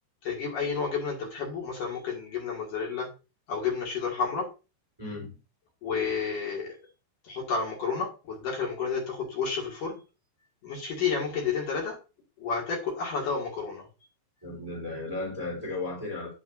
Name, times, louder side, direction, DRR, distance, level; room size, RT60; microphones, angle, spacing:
voice 1, 0.2-3.1 3.5-4.5 5.8-6.7 7.2-10.0 10.6-12.0 12.4-13.9, left 5 dB, 50° left, -2 dB, 3.4 m, -31 dB
voice 2, 5.0-5.3 14.4-16.3, left 2 dB, 5° right, -3 dB, 3.1 m, -35 dB
8.8 x 7.1 x 2.6 m, 0.30 s
omnidirectional pair, 5.3 m